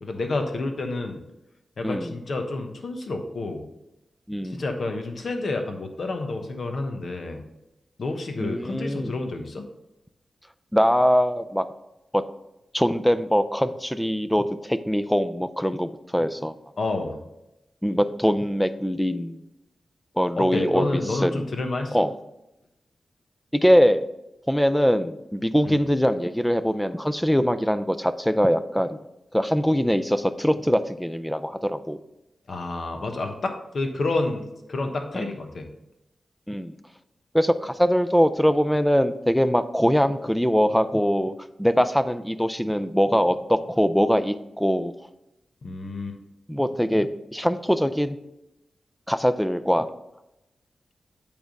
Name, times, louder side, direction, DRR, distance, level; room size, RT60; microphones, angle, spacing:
voice 1, 0.0-1.2 1.8-3.6 4.4-7.4 8.0-9.6 16.8-17.2 20.3-22.0 25.6-25.8 32.5-35.7 45.6-46.2, left 2 dB, 60° left, 5 dB, 1.1 m, -29 dB
voice 2, 4.3-4.6 8.4-9.2 10.7-11.7 12.1-12.2 12.7-16.5 17.8-19.4 20.2-20.9 21.2-21.4 21.9-22.1 23.5-24.1 24.5-28.9 29.3-32.0 35.1-35.3 36.5-36.7 37.3-41.3 41.6-44.9 46.5-48.2 49.1-49.9, equal, 5° left, 12 dB, 0.4 m, -22 dB
8.7 x 3.5 x 5.2 m, 0.90 s
wide cardioid pair, 85°, 0 cm